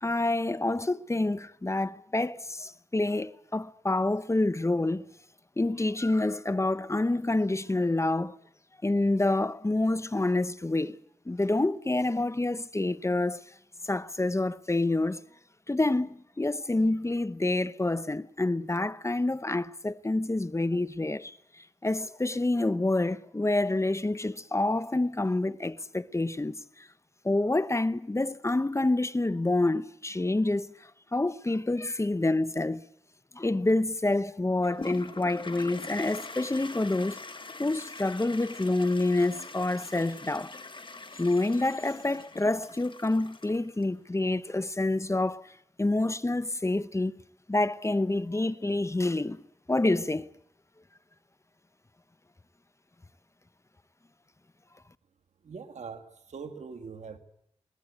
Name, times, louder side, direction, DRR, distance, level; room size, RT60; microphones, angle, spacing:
voice 1, 0.0-5.1 5.6-8.4 8.8-11.0 11.3-13.4 13.8-15.2 15.7-26.9 27.2-32.8 33.3-37.2 37.6-40.6 41.2-45.5 45.8-47.1 47.5-49.4 49.7-50.3, left 2 dB, 25° left, 0.9 m, -27 dB
Toilet flush, 34.6-43.8, left 3 dB, 45° left, 1.7 m, -43 dB
voice 2, 55.4-57.2, right 5 dB, 80° right, 1.8 m, -42 dB
21.5 x 18.5 x 8.1 m
cardioid pair, 45°, 12 cm